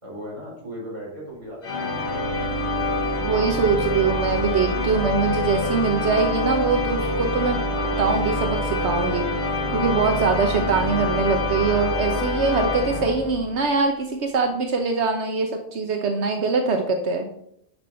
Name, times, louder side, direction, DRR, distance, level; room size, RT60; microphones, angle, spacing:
voice 1, 0.0-1.9, equal, 30° right, -5 dB, 4.9 m, -37 dB
sound 1, 1.6-13.6, left 2 dB, 80° left, 1.9 m, -25 dB
voice 2, 3.2-7.6 8.0-9.2 9.7-17.3, right 4 dB, 80° right, 4 dB, 1.3 m, -23 dB
11.5 x 6.2 x 4.3 m, 0.72 s
omnidirectional pair, 1.1 m